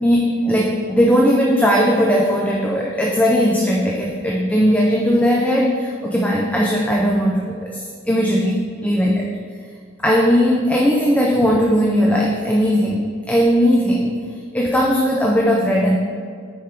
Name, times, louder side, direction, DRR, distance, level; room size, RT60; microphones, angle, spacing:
voice 1, 0.0-9.3 10.0-14.2 14.5-16.0, equal, 5° left, -1 dB, 0.4 m, -18 dB
5.8 x 4.4 x 4.9 m, 2.1 s
head